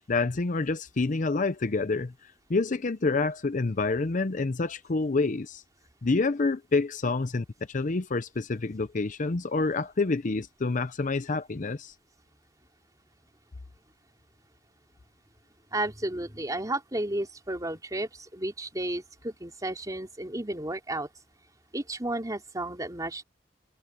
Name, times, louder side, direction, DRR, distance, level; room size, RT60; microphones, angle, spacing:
voice 1, 0.1-2.1 2.5-5.6 6.0-11.9, left 3 dB, 45° left, 0.6 m, -27 dB
voice 2, 15.7-21.1 21.7-23.2, right 1 dB, 20° right, 3.3 m, -32 dB
head